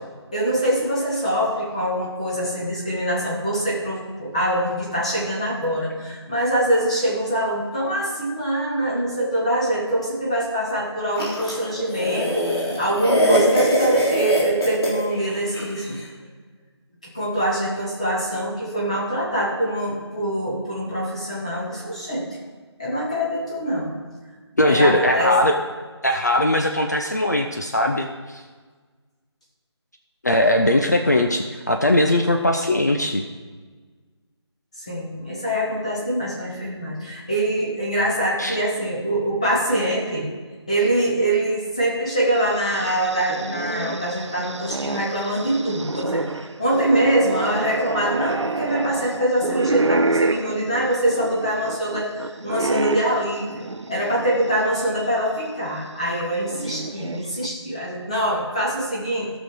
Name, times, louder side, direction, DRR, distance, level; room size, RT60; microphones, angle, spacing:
voice 1, 0.3-16.0 17.1-22.3 22.8-23.9 24.7-25.3 34.7-40.3 40.7-59.3, right 1 dB, 15° left, -5 dB, 1.0 m, -24 dB
sound 1, 11.2-15.9, equal, 60° left, 3.5 m, -23 dB
voice 2, 24.6-25.5 26.0-28.4 30.2-33.2 38.4-38.6, left 1 dB, 35° left, 4 dB, 0.5 m, -20 dB
sound 2, 42.3-54.6 55.0-55.1 56.2-57.5, right 3 dB, 80° right, 0.7 m, -28 dB
15.5 x 6.1 x 4.9 m, 1.4 s
figure-of-eight pair, 175°, 15 cm